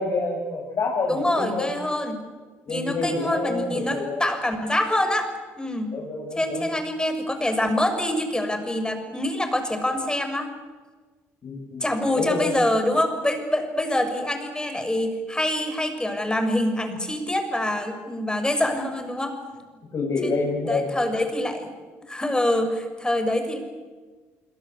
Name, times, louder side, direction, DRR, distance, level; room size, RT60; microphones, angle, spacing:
voice 1, 0.0-1.7 2.7-4.2 5.9-6.6 11.4-11.8 12.1-12.6 19.9-20.9, left 3 dB, 50° left, -2 dB, 7.4 m, -27 dB
voice 2, 1.1-2.2 2.7-5.3 5.6-5.9 6.3-10.5 11.8-19.4 20.2-21.7 22.1-23.6, left 1 dB, 10° left, 7 dB, 6.6 m, -25 dB
25.5 x 24.5 x 8.3 m, 1.4 s
hypercardioid pair, 55°, 7 cm